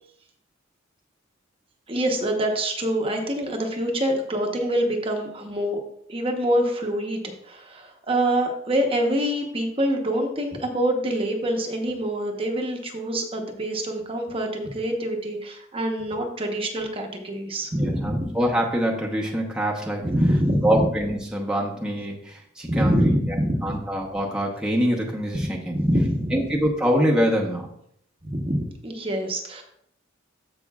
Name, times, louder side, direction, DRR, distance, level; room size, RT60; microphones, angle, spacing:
voice 1, 1.9-5.8 6.1-18.3 20.0-20.9 22.6-23.7 25.3-26.4 28.2-29.6, equal, 30° right, 3 dB, 1.0 m, -25 dB
voice 2, 17.7-20.1 20.6-23.4 23.6-25.8 26.3-27.7, equal, 5° right, -3 dB, 0.9 m, -25 dB
14.5 x 5.2 x 2.4 m, 0.69 s
head